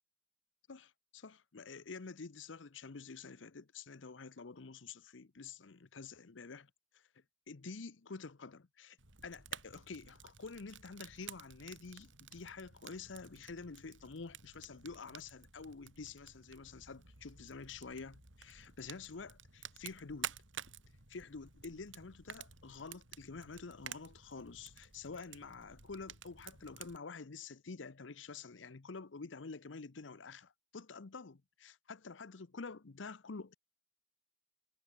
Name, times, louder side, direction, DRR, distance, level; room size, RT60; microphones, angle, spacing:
voice 1, 0.7-7.0 7.5-9.0 9.2-20.3 21.1-33.5, left 4 dB, 80° left, 0.8 m, -48 dB
Fire, 9.0-27.0, right 8 dB, 90° right, 6.0 m, -52 dB
head